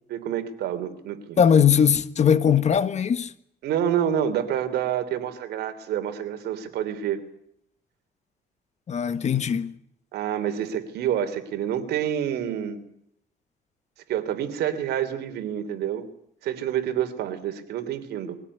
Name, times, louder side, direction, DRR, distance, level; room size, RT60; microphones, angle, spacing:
voice 1, 0.1-1.4 3.6-7.2 10.1-12.8 14.1-16.0 16.4-18.3, right 10 dB, 85° right, 3.1 m, -28 dB
voice 2, 1.4-3.3 8.9-9.7, left 8 dB, 45° left, 1.5 m, -20 dB
22.5 x 17.0 x 9.7 m
cardioid pair, 110°, 17 cm